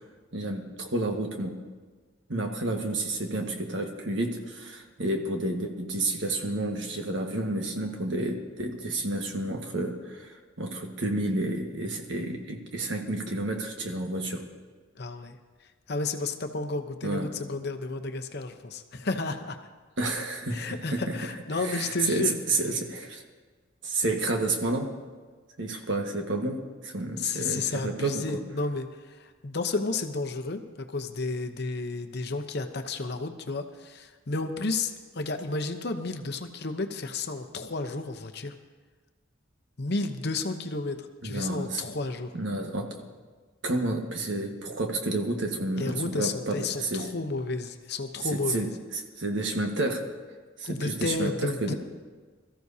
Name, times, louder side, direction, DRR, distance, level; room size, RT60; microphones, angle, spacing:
voice 1, 0.3-1.5 2.3-14.4 17.0-17.3 20.0-21.2 21.5-23.2 23.8-24.9 25.6-26.6 26.8-28.4 41.2-41.8 42.3-43.1 43.6-47.1 48.2-48.7 48.9-50.0 50.6-51.7, right 2 dB, 60° right, 2 dB, 1.5 m, -30 dB
voice 2, 15.0-15.4 15.9-19.6 20.5-22.4 27.2-30.6 30.9-38.5 39.8-41.0 41.2-42.3 45.7-48.7 50.6-51.7, left 3 dB, 50° left, 7 dB, 0.8 m, -32 dB
22.5 x 14.0 x 2.8 m, 1.4 s
head